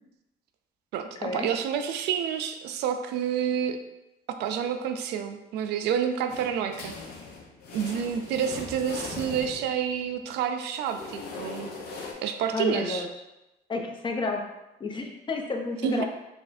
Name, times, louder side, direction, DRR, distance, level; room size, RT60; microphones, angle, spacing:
voice 1, 0.9-3.8 4.3-7.0 7.7-11.7 12.0-13.1 15.8-16.0, right 8 dB, 80° right, 7 dB, 0.4 m, -29 dB
sound 1, 6.3-10.1 10.8-12.1, left 4 dB, 70° left, 0.7 m, -40 dB
voice 2, 12.5-13.1 13.7-14.4 14.8-16.0, left 3 dB, 30° left, 2 dB, 0.6 m, -30 dB
4.7 x 2.5 x 2.5 m, 0.97 s
cardioid pair, 110°, 17 cm